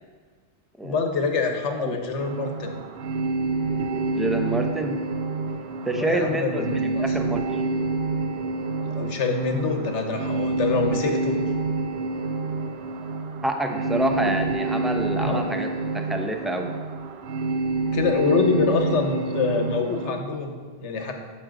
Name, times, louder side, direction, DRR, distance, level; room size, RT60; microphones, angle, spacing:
voice 1, 0.8-2.8 5.8-7.2 8.8-11.4 15.2-15.6 17.9-21.1, left 4 dB, 75° left, 4 dB, 1.3 m, -25 dB
sound 1, 2.2-20.1, right 3 dB, 65° right, 0.8 m, -28 dB
voice 2, 4.1-5.0 5.9-7.6 13.4-15.7 15.9-16.7, right 1 dB, ahead, 3 dB, 0.4 m, -27 dB
9.7 x 7.0 x 3.8 m, 1.5 s
omnidirectional pair, 1.2 m